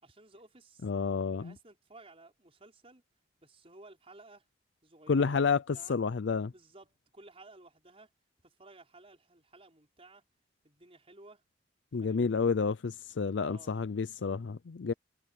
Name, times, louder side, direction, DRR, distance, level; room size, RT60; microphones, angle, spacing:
voice 1, 0.0-0.9 1.4-3.0 3.4-4.4 4.8-6.0 6.5-8.1 8.4-10.2 10.6-11.4 12.0-12.4 13.4-13.7 14.9-15.0, right 2 dB, 35° right, 5.2 m, -56 dB
voice 2, 0.8-1.5 5.1-6.5 11.9-14.9, left 5 dB, 75° left, 0.5 m, -30 dB
head